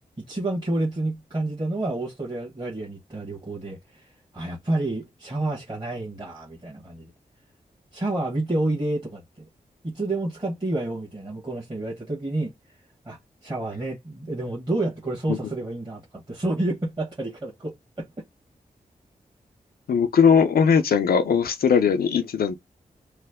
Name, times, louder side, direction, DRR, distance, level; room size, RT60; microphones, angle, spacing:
voice 1, 0.2-7.1 7.9-9.2 9.8-12.5 13.0-18.1, right 2 dB, 30° right, 1.3 m, -29 dB
voice 2, 19.9-22.5, left 6 dB, 80° left, 0.5 m, -19 dB
3.1 x 2.1 x 3.4 m
cardioid pair, 50°, 15 cm